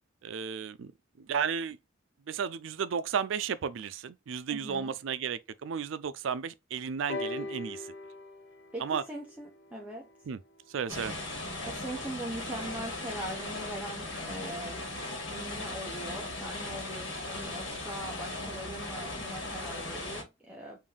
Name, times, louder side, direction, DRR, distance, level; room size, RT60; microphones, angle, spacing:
voice 1, 0.2-0.9 1.2-1.8 2.3-7.9 8.8-9.0 10.3-10.4 10.7-11.2, right 7 dB, 75° right, 0.4 m, -33 dB
voice 2, 4.5-5.0 8.7-10.1 11.6-14.9 15.3-20.8, right 1 dB, 5° right, 0.5 m, -41 dB
sound 1, 7.1-10.9 11.8-11.9, left 2 dB, 60° left, 0.7 m, -41 dB
sound 2, 10.9-20.2, left 2 dB, 85° left, 1.6 m, -38 dB
3.5 x 2.6 x 3.6 m
head